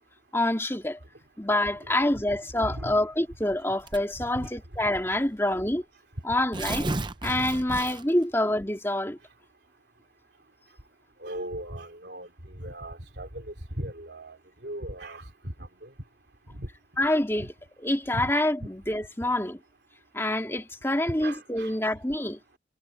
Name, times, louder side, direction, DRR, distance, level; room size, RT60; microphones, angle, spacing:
voice 1, 0.3-1.0 1.4-5.8 6.2-6.9 7.2-9.2 17.0-17.5 17.8-19.6 20.1-22.4, left 1 dB, 15° left, 2.4 m, -26 dB
voice 2, 2.6-3.0 4.3-4.5 11.2-12.3 12.6-15.9 16.5-16.7 17.4-17.5 18.1-18.3 21.1-21.7, right 1 dB, 60° right, 3.6 m, -38 dB
Tearing, 3.9-4.3 5.1-5.2 5.5-5.6 6.3-8.2, right 2 dB, 25° right, 0.7 m, -33 dB
head